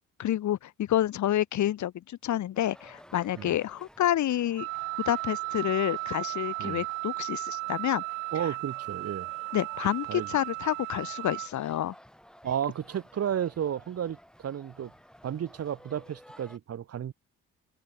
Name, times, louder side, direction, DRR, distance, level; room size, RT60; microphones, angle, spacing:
voice 1, 0.2-4.7 5.0-8.0 8.4-8.5 9.5-11.9, left 12 dB, 50° left, 0.9 m, -29 dB
sound 1, 2.5-16.6, equal, ahead, 5.3 m, -54 dB
Wind instrument woodwind instrument, 4.6-11.5, right 25 dB, 80° right, 0.9 m, -35 dB
voice 2, 8.3-9.3 10.1-10.3 12.4-14.9 15.2-17.1, right 9 dB, 40° right, 0.9 m, -33 dB
open air
hypercardioid pair, 45°, 36 cm